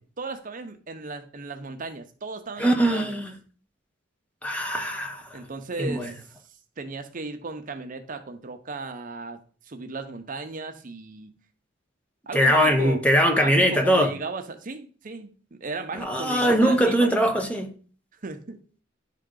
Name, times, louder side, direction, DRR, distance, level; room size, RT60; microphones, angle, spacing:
voice 1, 0.2-3.2 5.3-6.1 6.8-11.3 12.3-13.0 13.3-17.2 18.1-18.6, right 3 dB, 45° right, 0.7 m, -36 dB
voice 2, 2.6-3.3 4.4-5.4 5.8-6.1 12.3-14.1 16.0-17.7, equal, 5° left, 0.8 m, -21 dB
10.5 x 3.7 x 3.8 m
head